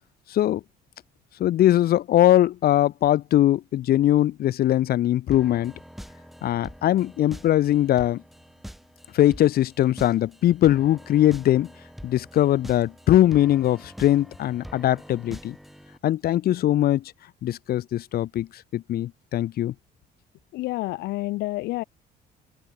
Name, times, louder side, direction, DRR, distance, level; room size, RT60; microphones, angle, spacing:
voice 1, 1.4-5.7 6.4-8.2 9.1-11.7 12.0-15.5 16.0-17.0 17.4-18.5 18.7-19.7, left 13 dB, 65° left, 2.0 m, -21 dB
sound 1, 5.3-16.0, equal, ahead, 7.0 m, -44 dB
voice 2, 20.5-21.8, left 19 dB, 85° left, 1.0 m, -29 dB
open air
cardioid pair, 110°, 17 cm